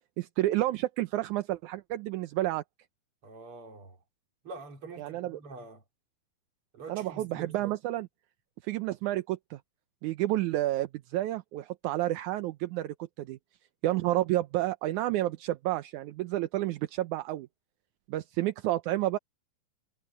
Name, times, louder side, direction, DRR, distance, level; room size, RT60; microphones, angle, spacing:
voice 1, 0.2-2.6 5.0-5.4 6.9-8.1 8.6-9.6 10.0-13.4 13.8-17.5 18.1-19.2, right 15 dB, 75° right, 1.9 m, -30 dB
voice 2, 3.2-4.0 4.4-5.8 6.7-7.7, right 3 dB, 40° right, 3.6 m, -45 dB
omnidirectional pair, 4.0 m